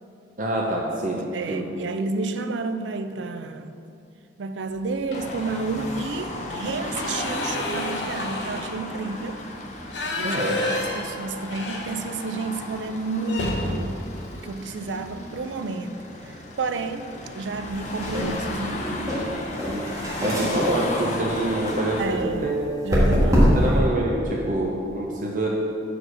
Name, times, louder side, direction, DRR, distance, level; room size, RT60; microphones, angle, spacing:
voice 1, 0.4-1.7 10.2-10.7 19.6-19.8 20.2-22.7 23.0-25.5, right 1 dB, 45° right, -2 dB, 0.7 m, -26 dB
voice 2, 1.3-3.7 4.4-9.4 10.2-10.5 10.8-14.0 14.3-19.1 22.0-22.6 22.8-23.7, right 3 dB, 90° right, 9 dB, 0.5 m, -31 dB
sound 1, 5.1-5.5 5.9-6.0 6.4-12.4 12.7-12.8 13.2-15.4 16.7-17.0 17.4-17.5 17.8-18.5, left 1 dB, 80° left, 0.9 m, -32 dB
Car passing by / Traffic noise roadway noise / Engine, 5.1-22.0, left 1 dB, 40° left, 0.8 m, -34 dB
sound 2, 17.7-23.8, equal, 20° right, 1.6 m, -25 dB
6.3 x 4.9 x 6.3 m, 2.5 s
head